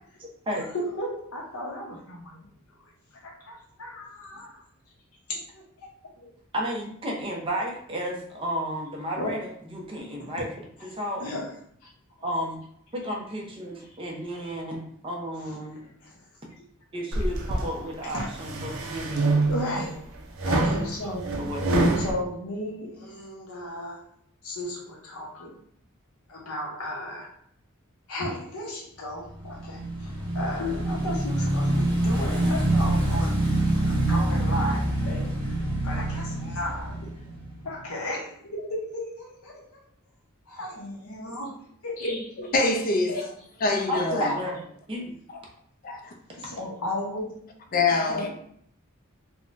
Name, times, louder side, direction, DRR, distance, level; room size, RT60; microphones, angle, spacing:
voice 1, 0.2-0.6 6.5-9.4 9.6-10.5 10.8-11.2 12.2-12.6 12.9-15.8 16.9-19.2 21.4-21.8 43.9-44.5 44.9-45.1, equal, 25° right, 0.6 m, -32 dB
voice 2, 0.7-2.4 3.2-4.6 5.3-5.6 9.2-9.4 11.2-11.5 14.4-14.5 15.4-15.5 15.8-15.9 17.8-18.3 19.0-20.0 20.4-21.3 22.0-24.0 24.4-25.5 26.3-27.3 28.1-36.9 37.6-39.6 40.5-41.5 41.8-42.5 43.1-43.2 44.2-44.3 46.4-47.4 48.1-48.3, left 1 dB, 85° left, 0.7 m, -34 dB
sound 1, 17.1-17.7 18.2-19.8 20.4-22.1, right 2 dB, 70° right, 0.5 m, -25 dB
Motorcycle / Engine, 29.3-37.8, right 1 dB, 55° right, 1.2 m, -26 dB
voice 3, 42.5-43.2 43.6-44.3 45.8-46.1 47.7-48.3, left 3 dB, 40° left, 0.4 m, -24 dB
3.5 x 2.2 x 2.4 m
head